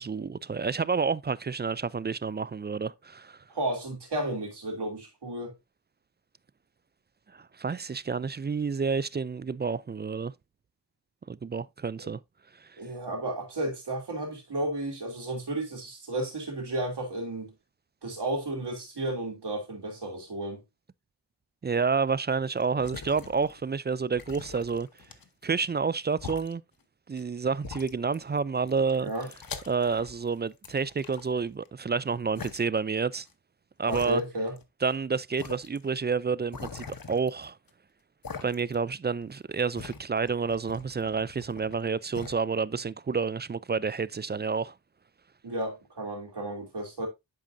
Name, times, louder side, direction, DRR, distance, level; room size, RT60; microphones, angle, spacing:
voice 1, 0.0-3.4 7.3-10.3 11.3-12.2 12.6-12.8 21.6-24.9 25.4-26.6 27.1-29.1 29.7-33.3 33.8-34.2 34.8-37.6 38.4-44.7, right 5 dB, 25° right, 0.4 m, -29 dB
voice 2, 3.5-5.5 12.0-12.1 12.8-17.5 18.0-20.6 29.0-29.3 33.9-34.5 45.4-47.1, right 1 dB, 90° right, 2.9 m, -33 dB
sound 1, 22.6-23.7 24.1-25.5 26.1-26.5 27.2-27.3 27.6-28.4 28.7-30.3 30.6-31.7 32.3-32.6 33.3-33.4 33.9-34.6 34.9-35.0 35.4-35.8 36.5-37.7 38.2-38.9 39.2-41.8 42.1-42.4, left 5 dB, 60° left, 1.1 m, -43 dB
10.5 x 5.0 x 2.6 m
cardioid pair, 50°, 39 cm